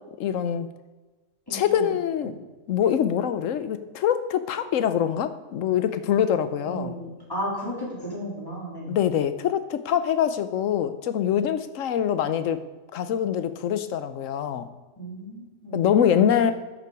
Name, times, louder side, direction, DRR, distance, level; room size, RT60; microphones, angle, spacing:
voice 1, 0.2-0.7 1.5-2.3 2.7-6.9 8.9-12.6 12.9-14.7 15.7-16.5, left 9 dB, 75° left, 11 dB, 1.1 m, -24 dB
voice 2, 1.5-1.9 6.6-9.0 15.0-15.9 16.4-16.5, equal, 15° left, -4 dB, 3.1 m, -34 dB
11.5 x 6.8 x 4.8 m, 1.2 s
omnidirectional pair, 1.3 m